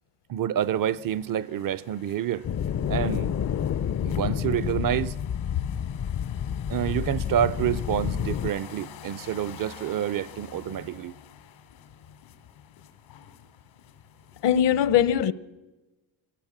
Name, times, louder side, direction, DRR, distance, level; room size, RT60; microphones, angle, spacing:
voice 1, 0.3-2.5 2.9-3.7 4.0-5.2 6.7-11.1, right 10 dB, 50° right, 0.6 m, -28 dB
sound 1, 0.6-14.7, left 8 dB, 85° left, 2.9 m, -49 dB
sound 2, 2.4-8.5, left 8 dB, 35° left, 0.6 m, -29 dB
voice 2, 14.4-15.3, left 10 dB, 65° left, 1.1 m, -21 dB
22.0 x 18.5 x 7.2 m
cardioid pair, 115°, 45 cm